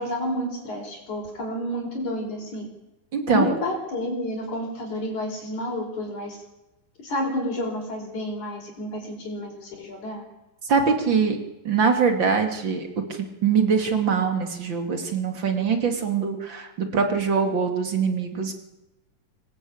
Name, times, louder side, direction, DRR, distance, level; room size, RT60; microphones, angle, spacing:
voice 1, 0.0-2.7 3.3-6.4 7.0-10.2, left 1 dB, 60° left, 1 dB, 5.7 m, -30 dB
voice 2, 3.1-3.5 10.6-11.4 11.6-18.5, right 5 dB, 35° right, 5 dB, 2.9 m, -23 dB
24.5 x 19.0 x 8.8 m, 0.97 s
omnidirectional pair, 3.9 m